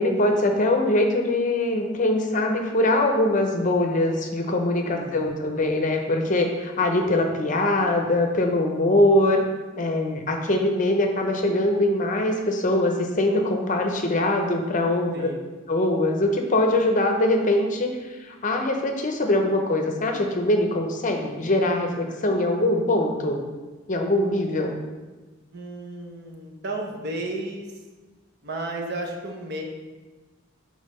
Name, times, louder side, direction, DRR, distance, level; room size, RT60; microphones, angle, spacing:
voice 1, 0.0-9.4 9.8-15.3 15.7-17.9 18.2-23.4 23.9-24.7, left 1 dB, 40° left, 3 dB, 0.6 m, -22 dB
voice 2, 4.8-5.4 15.1-15.3 25.5-27.7 28.4-29.6, right 2 dB, 55° right, 1 dB, 0.9 m, -33 dB
5.5 x 3.6 x 5.3 m, 1.3 s
head